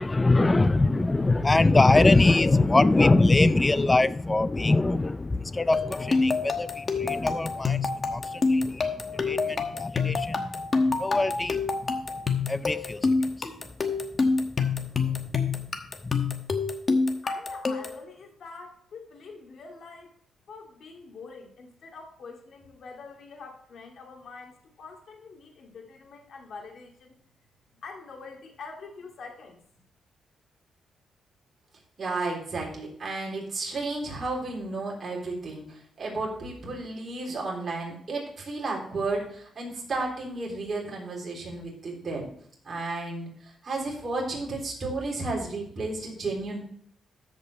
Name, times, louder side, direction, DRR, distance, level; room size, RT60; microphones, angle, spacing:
voice 1, 0.0-10.5 10.9-11.9 12.5-13.1 13.4-13.5 15.3-15.4 16.0-16.1, left 2 dB, 20° left, 0.4 m, -23 dB
sound 1, 5.7-18.0, left 4 dB, 35° left, 1.1 m, -27 dB
voice 2, 17.2-20.1 20.5-27.2 27.8-29.6, left 4 dB, 60° left, 2.3 m, -45 dB
voice 3, 32.0-42.3 42.6-46.6, right 3 dB, 40° right, 3.7 m, -33 dB
13.5 x 5.3 x 4.2 m
cardioid pair, 115°, 0 cm